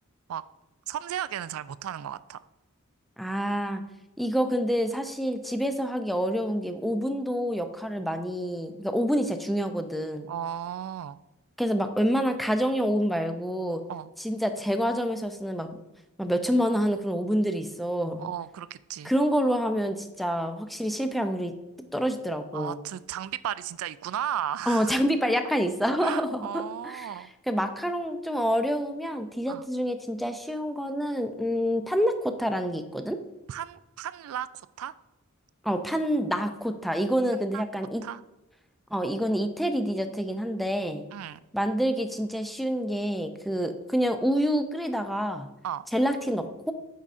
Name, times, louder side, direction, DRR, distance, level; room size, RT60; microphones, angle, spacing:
voice 1, 0.9-2.4 10.3-11.2 13.9-14.1 18.2-19.1 22.5-24.9 26.0-27.3 29.5-29.7 33.5-34.5 34.8-34.9 37.5-37.6 38.0-38.2 41.1-41.4 45.6-45.8, right 10 dB, 75° right, 16 dB, 0.3 m, -34 dB
voice 2, 3.2-3.8 4.2-10.3 11.6-13.8 14.2-15.8 16.2-18.3 19.0-21.5 21.9-22.8 24.7-27.1 27.5-33.2 35.6-38.0 38.9-41.1 41.5-45.5 45.9-46.7, equal, ahead, 7 dB, 0.4 m, -27 dB
8.1 x 5.5 x 2.5 m, 0.97 s
head